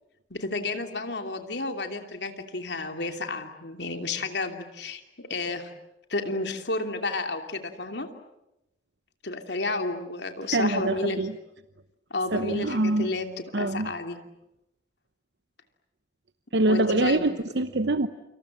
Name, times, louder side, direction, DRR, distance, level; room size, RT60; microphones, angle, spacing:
voice 1, 0.3-5.7 6.1-8.1 9.2-11.3 12.1-14.2 16.7-17.4, left 2 dB, 75° left, 5 dB, 2.9 m, -31 dB
voice 2, 10.5-11.3 12.3-13.1 13.5-13.9 16.5-18.1, right 2 dB, 70° right, 10 dB, 1.0 m, -24 dB
29.0 x 26.5 x 7.6 m, 0.89 s
head